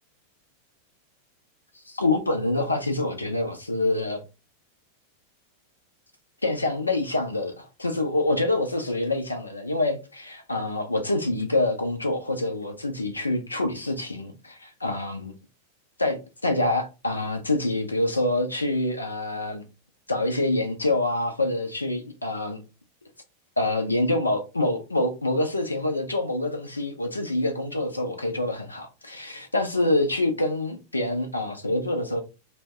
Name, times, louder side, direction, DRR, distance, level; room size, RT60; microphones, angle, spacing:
voice 1, 1.9-4.2 6.4-15.3 16.0-19.6 20.1-22.6 23.6-32.2, left 2 dB, 80° left, 0.5 m, -26 dB
2.6 x 2.1 x 3.3 m
figure-of-eight pair, 90°, 0 cm